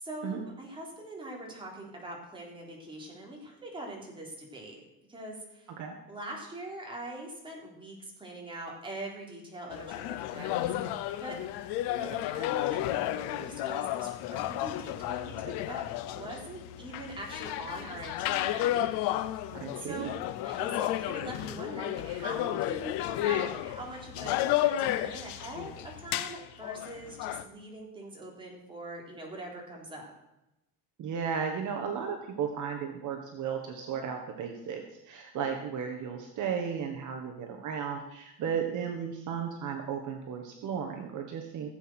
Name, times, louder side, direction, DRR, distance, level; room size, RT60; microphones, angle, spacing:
voice 1, 0.0-4.8 5.1-5.7 6.1-11.4 11.9-19.4 19.8-20.2 20.4-30.1 38.4-38.7, right 1 dB, 15° right, -2 dB, 3.7 m, -43 dB
sound 1, 9.7-27.4, left 13 dB, 85° left, 1.0 m, -32 dB
voice 2, 19.5-20.1 31.0-41.7, right 7 dB, 50° right, 3 dB, 1.6 m, -34 dB
16.5 x 8.0 x 6.2 m, 0.90 s
cardioid pair, 155°, 39 cm